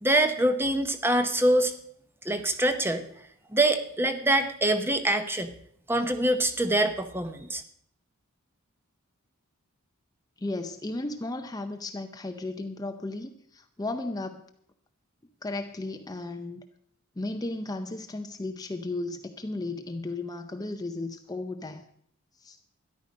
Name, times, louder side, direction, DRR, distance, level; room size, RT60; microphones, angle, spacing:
voice 1, 0.0-1.7 2.2-3.1 3.5-5.5 5.9-7.6, right 1 dB, 10° right, 8 dB, 0.8 m, -24 dB
voice 2, 10.4-14.4 15.4-16.6 17.2-21.9 22.4-22.6, left 2 dB, 15° left, 7 dB, 0.6 m, -35 dB
13.0 x 11.0 x 5.3 m, 0.67 s
head